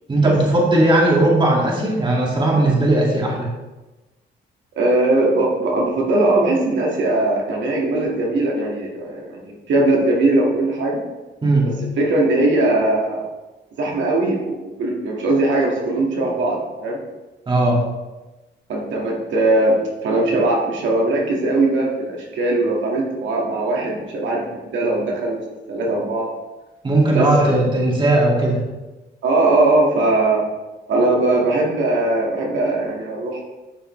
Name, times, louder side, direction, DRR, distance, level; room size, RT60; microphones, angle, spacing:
voice 1, 0.1-3.5 11.4-11.8 17.5-17.8 26.8-28.6, right 2 dB, 25° right, -3 dB, 2.2 m, -17 dB
voice 2, 4.8-11.0 12.0-13.2 13.8-17.0 18.7-19.7 20.0-24.4 24.7-25.4 25.7-26.3 27.1-27.3 29.2-30.4 30.9-33.4, right 2 dB, 75° right, -2 dB, 1.8 m, -20 dB
11.5 x 5.3 x 3.2 m, 1.1 s
cardioid pair, 115°, 19 cm